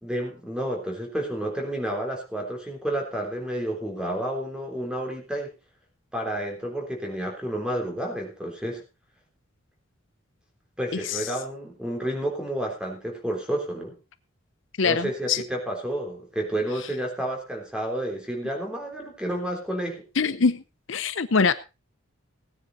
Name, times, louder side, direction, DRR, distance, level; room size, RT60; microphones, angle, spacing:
voice 1, 0.0-5.5 6.1-8.8 10.8-14.0 14.8-20.0, right 1 dB, 5° right, 3.6 m, -30 dB
voice 2, 14.8-15.4 20.2-20.6 20.9-21.5, left 5 dB, 65° left, 0.7 m, -23 dB
17.5 x 9.8 x 4.1 m
head